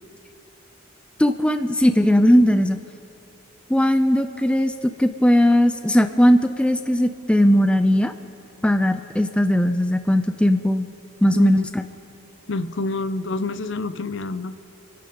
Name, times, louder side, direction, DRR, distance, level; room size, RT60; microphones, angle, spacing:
voice 1, 1.2-2.8 3.7-8.1 8.6-10.9 11.2-11.8, equal, 5° left, 8 dB, 0.4 m, -18 dB
voice 2, 11.3-11.7 12.5-14.5, left 3 dB, 65° left, 12 dB, 0.6 m, -28 dB
29.0 x 11.0 x 3.9 m, 2.7 s
head